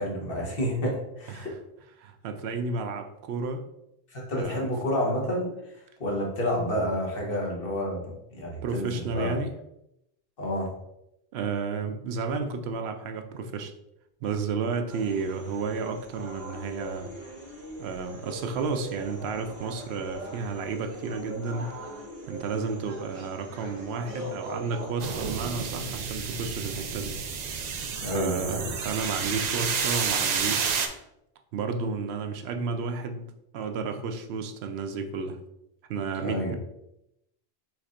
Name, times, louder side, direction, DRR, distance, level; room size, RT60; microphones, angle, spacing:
voice 1, 0.0-1.5 4.1-5.5 6.0-9.4 10.4-10.7 28.0-28.7 36.2-36.5, equal, 65° left, -2 dB, 1.4 m, -29 dB
voice 2, 2.0-3.6 4.3-4.7 8.6-9.5 11.3-13.7 14.2-17.1 17.8-21.9 22.3-27.2 28.0-30.8 31.5-33.3 33.5-35.4 35.9-36.6, right 4 dB, 85° right, 6 dB, 0.8 m, -32 dB
sound 1, 14.9-24.9, right 1 dB, 70° right, 1.6 m, -41 dB
sound 2, 25.0-30.9, right 6 dB, 55° right, 0.5 m, -30 dB
4.6 x 4.2 x 2.4 m, 0.82 s
omnidirectional pair, 1.0 m